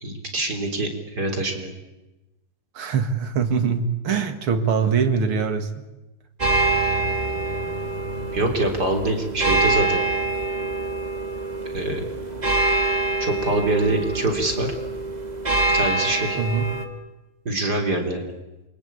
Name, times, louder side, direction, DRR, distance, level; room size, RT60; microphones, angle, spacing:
voice 1, 0.0-1.7 8.3-10.0 11.7-12.1 13.2-14.7 15.7-16.4 17.5-18.3, right 2 dB, 45° right, 3 dB, 4.1 m, -24 dB
voice 2, 2.7-5.7 16.4-16.7, right 6 dB, 80° right, 8 dB, 2.9 m, -23 dB
sound 1, 6.4-16.8, right 2 dB, 20° right, 2.4 m, -25 dB
27.5 x 24.0 x 8.6 m, 1.0 s
omnidirectional pair, 2.4 m